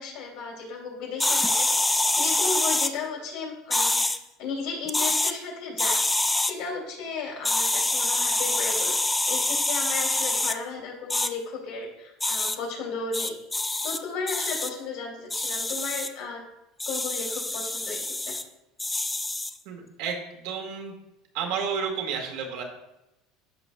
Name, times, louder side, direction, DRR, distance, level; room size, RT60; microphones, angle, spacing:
voice 1, 0.0-1.7 2.2-4.1 4.4-6.0 6.4-8.9 9.2-13.3 13.8-16.4 16.9-18.3, left 4 dB, 70° left, -1 dB, 2.8 m, -34 dB
sound 1, 1.2-2.9 3.7-4.2 4.9-5.3 5.8-6.5 7.4-10.6 11.1-11.3 12.2-12.6 13.1-14.0 14.3-14.7 15.3-16.1 16.8-18.4 18.8-19.5, left 2 dB, 10° left, 0.4 m, -25 dB
voice 2, 19.6-20.9 21.3-22.6, right 6 dB, 75° right, 2 dB, 1.7 m, -31 dB
13.5 x 5.0 x 2.3 m, 0.93 s
supercardioid pair, 125°, 0 cm